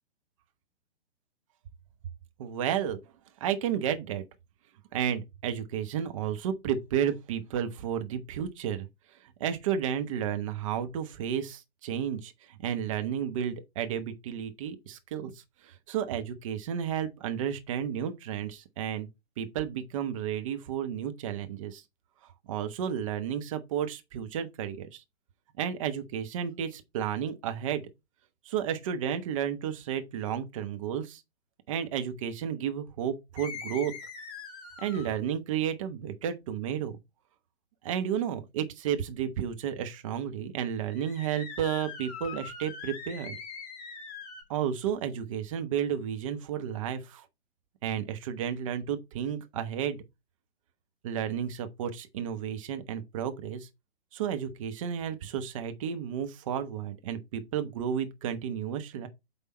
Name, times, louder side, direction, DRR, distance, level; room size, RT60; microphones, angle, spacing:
voice 1, 2.4-3.0 3.4-4.2 4.9-8.9 9.4-15.3 15.6-19.1 19.4-21.8 22.5-25.0 25.6-27.8 28.5-31.2 31.7-33.9 34.8-37.0 37.8-43.4 44.5-47.2 47.8-50.0 51.0-53.7 54.1-59.1, right 9 dB, 30° right, 0.9 m, -32 dB
sound 1, 33.4-35.2 40.8-44.4, left 5 dB, 35° left, 1.8 m, -42 dB
8.2 x 3.6 x 4.2 m
figure-of-eight pair, 120°, 32 cm